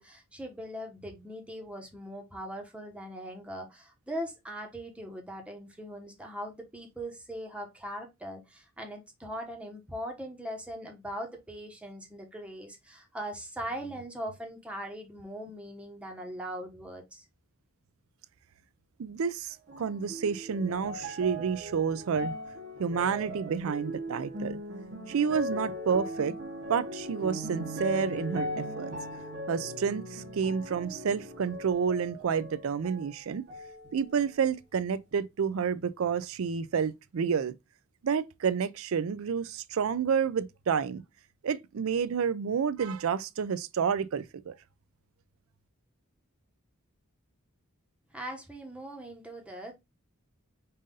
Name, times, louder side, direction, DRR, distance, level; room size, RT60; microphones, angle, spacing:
voice 1, 0.0-17.2 48.1-49.7, equal, 5° right, 1.0 m, -40 dB
voice 2, 19.0-22.4 22.8-24.6 25.1-26.3 26.7-28.9 29.5-33.4 33.9-37.5 38.0-41.0 41.4-44.5, right 6 dB, 70° right, 0.4 m, -29 dB
sound 1, 19.7-33.2 33.5-34.4 35.1-35.2, equal, 50° right, 1.0 m, -39 dB
5.5 x 2.5 x 3.7 m
head